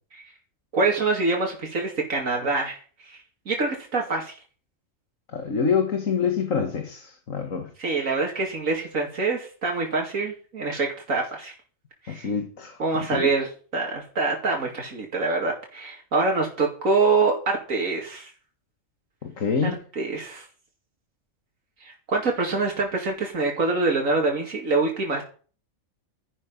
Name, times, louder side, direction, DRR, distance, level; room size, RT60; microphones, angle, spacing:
voice 1, 0.7-2.8 3.0-3.2 3.5-4.3 7.8-11.5 12.0-12.3 12.8-18.3 19.6-20.4 21.8-25.2, right 3 dB, 90° right, 0 dB, 2.8 m, -25 dB
voice 2, 5.3-7.7 12.1-12.8 13.1-13.3 19.2-19.8, left 6 dB, 80° left, 5 dB, 2.2 m, -26 dB
13.0 x 11.0 x 5.5 m, 0.40 s
omnidirectional pair, 1.4 m